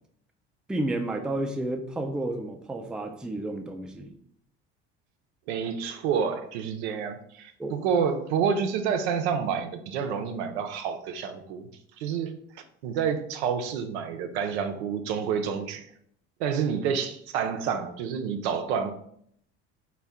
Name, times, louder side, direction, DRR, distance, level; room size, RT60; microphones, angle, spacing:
voice 1, 0.7-4.1 7.6-7.8, right 1 dB, ahead, 4 dB, 0.4 m, -31 dB
voice 2, 5.5-11.7 12.0-12.4 12.8-15.9 16.4-18.9, right 7 dB, 70° right, 7 dB, 0.5 m, -28 dB
4.3 x 2.2 x 3.4 m, 0.67 s
hypercardioid pair, 60°, 35 cm